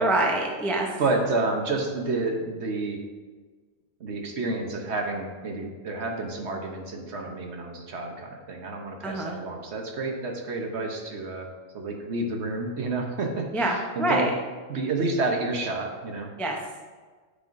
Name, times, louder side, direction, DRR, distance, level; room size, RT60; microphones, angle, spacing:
voice 1, 0.0-0.9 9.0-9.4 13.5-14.3 16.4-16.6, right 1 dB, ahead, 0 dB, 0.3 m, -25 dB
voice 2, 1.0-3.0 4.0-11.5 11.7-14.3 14.7-16.3, right 3 dB, 60° right, 2 dB, 1.1 m, -29 dB
8.2 x 5.5 x 2.5 m, 1.4 s
omnidirectional pair, 1.3 m